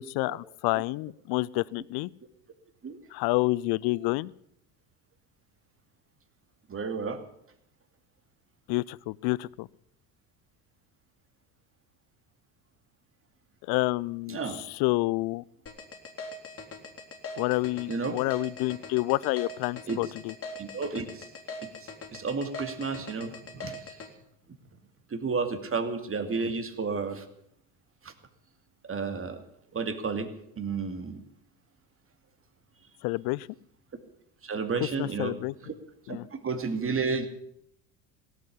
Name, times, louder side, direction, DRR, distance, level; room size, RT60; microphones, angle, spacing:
voice 1, 0.0-2.1 3.1-4.3 8.7-9.7 13.7-15.4 17.4-20.3 33.0-33.5 35.0-35.5 36.1-36.3, left 21 dB, 50° left, 24 dB, 0.6 m, -29 dB
voice 2, 6.7-7.2 14.3-14.6 17.9-18.2 19.9-20.0 20.6-21.2 21.6-24.0 25.1-27.2 28.0-28.1 28.9-29.4 29.7-30.3 30.6-31.2 34.4-35.4 35.6-35.7 36.1-36.2 36.4-37.3, right 4 dB, 25° right, 8 dB, 2.5 m, -32 dB
sound 1, 15.7-24.1, left 3 dB, 30° left, 3.3 m, -41 dB
17.5 x 8.4 x 9.8 m, 0.74 s
hypercardioid pair, 70°, 47 cm